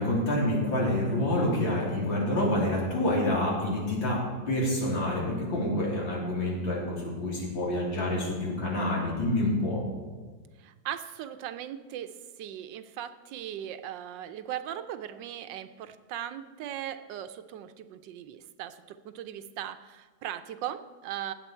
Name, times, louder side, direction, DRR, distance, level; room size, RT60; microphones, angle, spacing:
voice 1, 0.0-9.8, left 1 dB, 85° left, -4 dB, 3.7 m, -27 dB
voice 2, 10.6-21.3, right 11 dB, 75° right, 11 dB, 1.2 m, -38 dB
17.0 x 7.6 x 4.4 m, 1.4 s
omnidirectional pair, 2.0 m